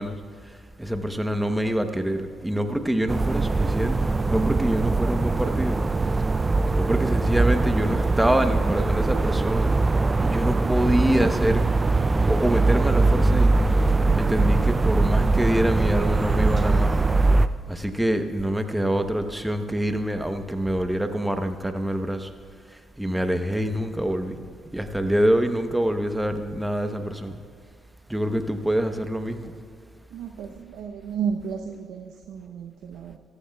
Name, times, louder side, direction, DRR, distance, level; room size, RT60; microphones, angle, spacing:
voice 1, 0.0-5.8 6.7-9.7 10.2-11.6 12.3-13.5 14.2-17.0 17.7-22.3 22.7-24.4 24.7-27.4 28.1-29.5, right 1 dB, 5° right, 7 dB, 0.9 m, -26 dB
sound 1, 3.1-17.5, right 3 dB, 25° right, 0.4 m, -21 dB
voice 2, 30.1-33.2, right 7 dB, 90° right, 3 dB, 0.7 m, -33 dB
16.5 x 14.0 x 2.3 m, 2.3 s
cardioid pair, 90°, 0 cm